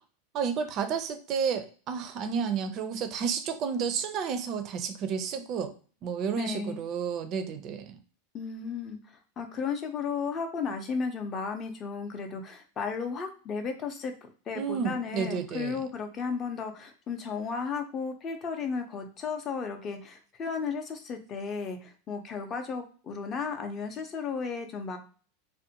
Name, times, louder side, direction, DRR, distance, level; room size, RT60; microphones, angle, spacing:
voice 1, 0.3-5.7 6.0-8.0 14.6-15.8, right 6 dB, 40° right, 9 dB, 0.4 m, -31 dB
voice 2, 6.3-6.8 8.3-9.0 9.4-14.1 14.5-25.0, left 5 dB, 30° left, 5 dB, 0.5 m, -34 dB
2.5 x 2.1 x 2.8 m, 0.40 s
supercardioid pair, 145°, 0 cm